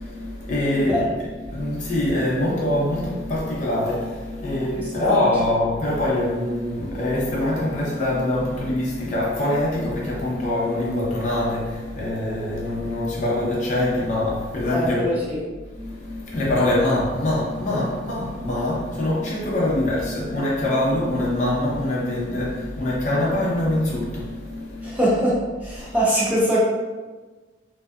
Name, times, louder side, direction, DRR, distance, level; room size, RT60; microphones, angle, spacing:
voice 1, 0.0-15.1 15.7-25.0 25.8-26.0, left 1 dB, 40° left, -5 dB, 0.5 m, -24 dB
voice 2, 14.7-15.4 24.8-25.3 25.6-26.6, equal, 10° right, -7 dB, 0.5 m, -22 dB
2.6 x 2.2 x 2.3 m, 1.3 s
head